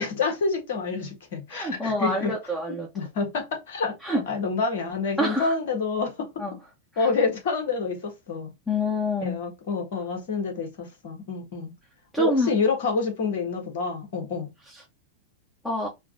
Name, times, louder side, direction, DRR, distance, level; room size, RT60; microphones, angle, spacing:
voice 1, 0.0-2.3 2.7-6.3 7.0-8.5 9.2-11.7 12.2-14.5, left 4 dB, 55° left, 1.5 m, -28 dB
voice 2, 1.5-2.9 4.0-4.2 5.2-5.5 6.4-6.5 6.9-7.1 8.7-9.4 12.1-12.5 15.6-15.9, left 1 dB, 5° left, 1.2 m, -26 dB
4.4 x 2.4 x 3.8 m
figure-of-eight pair, 90°, 0 cm